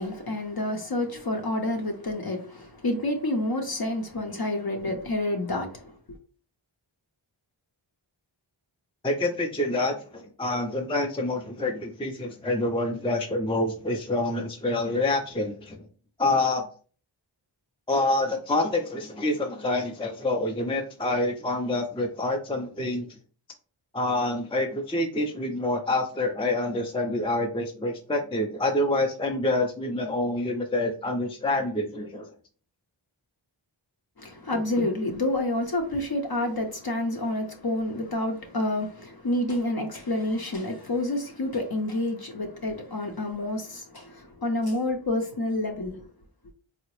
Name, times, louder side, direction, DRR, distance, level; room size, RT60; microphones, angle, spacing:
voice 1, 0.0-6.2 34.2-46.0, left 1 dB, 50° left, 0.6 m, -29 dB
voice 2, 9.0-15.9 16.2-16.7 17.9-23.1 23.9-32.3, left 2 dB, 10° left, 0.4 m, -27 dB
3.8 x 2.0 x 3.0 m
wide cardioid pair, 45°, 48 cm